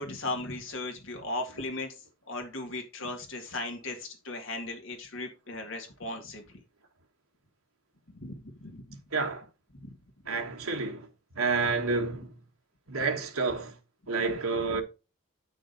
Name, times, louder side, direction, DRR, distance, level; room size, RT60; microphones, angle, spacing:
voice 1, 0.0-1.9 2.3-6.6 8.1-9.0 9.7-9.9, left 2 dB, 60° left, 2.0 m, -37 dB
voice 2, 9.1-9.5 10.3-11.1 11.3-12.4 12.9-13.7 14.1-14.8, right 4 dB, 80° right, 1.5 m, -29 dB
9.1 x 6.2 x 4.0 m
head